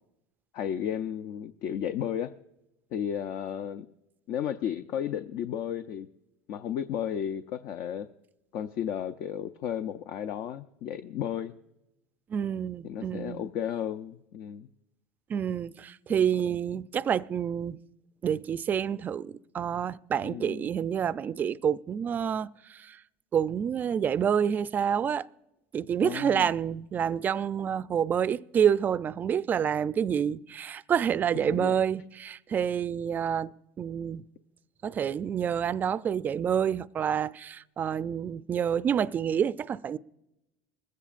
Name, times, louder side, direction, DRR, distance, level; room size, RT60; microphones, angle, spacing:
voice 1, 0.5-2.3 2.9-3.9 4.3-6.1 6.5-8.1 8.5-11.5 12.8-14.7 16.1-16.2 20.2-20.7 26.0-26.5 31.5-31.8, left 9 dB, 60° left, 0.5 m, -33 dB
voice 2, 12.3-13.5 15.3-17.8 18.2-23.0 23.3-25.3 25.7-33.5 33.8-34.2 34.8-40.0, right 8 dB, 30° right, 0.4 m, -28 dB
20.5 x 16.0 x 2.5 m
supercardioid pair, 110°, 6 cm